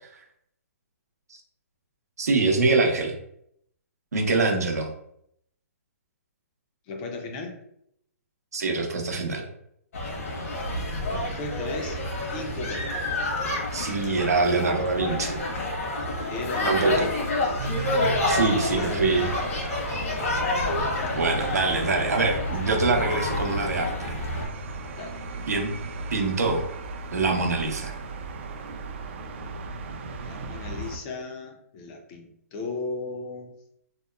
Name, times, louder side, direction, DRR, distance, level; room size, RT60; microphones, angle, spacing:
voice 1, 2.2-3.2 4.1-4.9 8.5-9.5 13.7-15.4 16.6-17.1 18.3-19.3 21.1-24.2 25.5-25.7 26.1-26.7 27.1-27.9, right 3 dB, 85° right, 2 dB, 0.7 m, -24 dB
voice 2, 6.9-7.6 11.1-12.0 12.3-13.0 16.3-17.6 18.4-19.5 24.9-25.2 30.2-33.6, left 3 dB, 30° left, 3 dB, 0.4 m, -36 dB
sound 1, 9.9-24.5, left 2 dB, 65° left, 1.0 m, -29 dB
sound 2, 17.6-31.0, right 3 dB, 50° right, 0.4 m, -36 dB
2.8 x 2.1 x 2.2 m, 0.73 s
hypercardioid pair, 145°, 8 cm